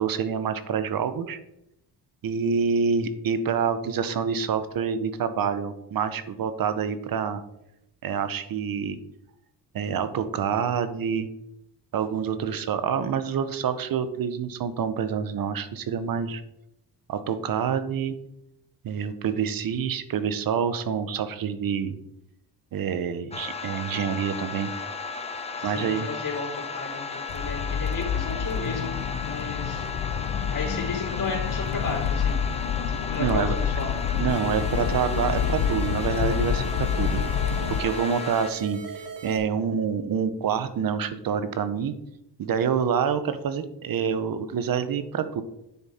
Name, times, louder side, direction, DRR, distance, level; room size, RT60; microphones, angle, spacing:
voice 1, 0.0-1.4 2.2-7.4 8.0-9.0 9.7-11.3 11.9-16.4 17.1-18.1 18.8-22.0 22.7-24.7 25.6-26.1 33.2-33.6 34.2-37.2 37.7-42.0 42.4-45.4, right 7 dB, 55° right, 12 dB, 0.8 m, -27 dB
sound 1, 23.3-38.5, left 4 dB, 15° left, 0.7 m, -35 dB
voice 2, 25.6-29.9 30.5-32.4 33.1-33.9, left 3 dB, 50° left, -1 dB, 3.7 m, -34 dB
Accelerating revving vroom, 27.3-37.8, left 8 dB, 65° left, 0.7 m, -28 dB
sound 2, 34.3-39.4, right 5 dB, 80° right, 2.1 m, -38 dB
9.6 x 7.4 x 4.3 m, 0.84 s
wide cardioid pair, 160°, 42 cm